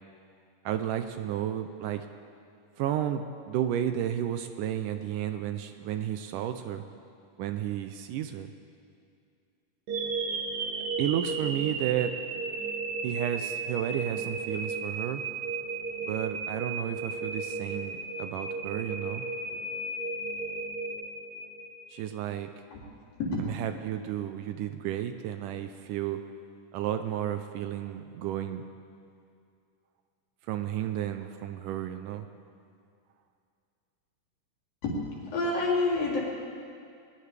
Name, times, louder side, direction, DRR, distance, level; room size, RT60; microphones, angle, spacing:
voice 1, 0.7-2.1 2.8-6.8 7.4-8.5 11.0-12.2 13.0-15.2 16.0-19.3 21.9-22.5 23.4-26.2 26.7-28.7 30.5-32.3, right 10 dB, 80° right, 8 dB, 2.0 m, -32 dB
sound 1, 9.9-22.0, right 4 dB, 60° right, 2.2 m, -34 dB
voice 2, 34.8-36.2, left 3 dB, 80° left, -5 dB, 4.9 m, -28 dB
20.5 x 20.0 x 3.4 m, 2.4 s
omnidirectional pair, 4.0 m